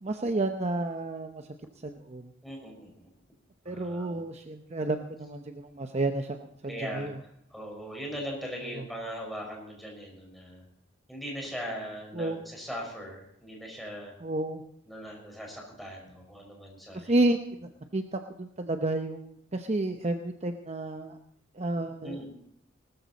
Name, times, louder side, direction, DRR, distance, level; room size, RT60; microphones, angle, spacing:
voice 1, 0.0-1.5 1.8-2.3 3.7-6.4 6.6-7.2 8.8-8.9 12.1-12.4 14.2-14.6 16.9-21.2 21.5-22.2, right 2 dB, 35° right, 6 dB, 0.8 m, -31 dB
voice 2, 2.4-3.1 3.6-4.2 6.7-7.1 7.5-10.6 11.1-14.1 14.9-17.2 22.0-22.2, equal, ahead, -1 dB, 5.0 m, -40 dB
19.5 x 13.5 x 4.1 m, 0.73 s
head